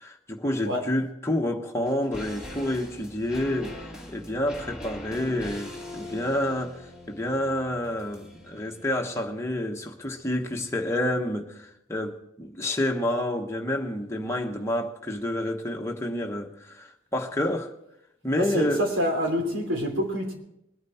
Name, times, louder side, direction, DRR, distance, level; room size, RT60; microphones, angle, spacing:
voice 1, 0.0-17.7 18.2-18.8, left 1 dB, 15° left, 1.2 m, -29 dB
Cheerful Intro, 1.8-11.2 11.5-11.6, left 1 dB, 5° right, 2.1 m, -43 dB
voice 2, 18.4-20.3, equal, 80° right, 3.3 m, -27 dB
21.5 x 9.2 x 4.3 m
head